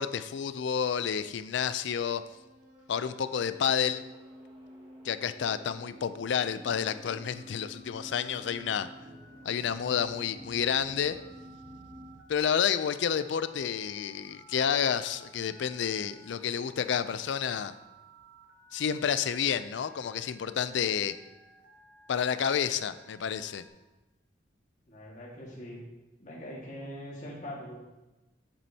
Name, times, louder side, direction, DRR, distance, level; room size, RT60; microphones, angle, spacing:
voice 1, 0.0-2.2 2.9-4.0 5.0-8.9 9.4-11.2 12.3-17.7 18.7-21.1 22.1-23.6, left 8 dB, 70° left, 13 dB, 0.4 m, -30 dB
sound 1, 1.9-12.2, equal, 25° right, 2.1 m, -50 dB
Telephone, 6.9-23.7, right 2 dB, 80° right, 1.5 m, -58 dB
voice 2, 24.9-25.8 26.2-27.8, equal, 40° left, -5 dB, 1.7 m, -42 dB
8.5 x 7.2 x 2.8 m, 1.1 s
head